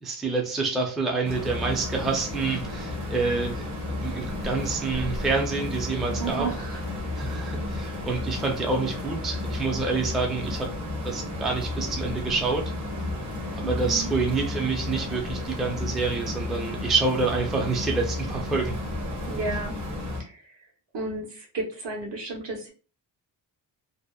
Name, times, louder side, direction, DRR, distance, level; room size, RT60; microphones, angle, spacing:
voice 1, 0.0-6.5 7.2-10.7 11.0-12.6 13.5-18.7, right 4 dB, ahead, 0 dB, 0.4 m, -27 dB
sound 1, 1.2-20.2, left 2 dB, 40° right, 0.8 m, -32 dB
voice 2, 6.2-6.9 13.6-14.1 19.3-19.7 20.2-20.4 20.9-22.7, right 3 dB, 65° right, -1 dB, 1.1 m, -32 dB
2.7 x 2.0 x 2.2 m, 0.38 s
cardioid pair, 110°, 45 cm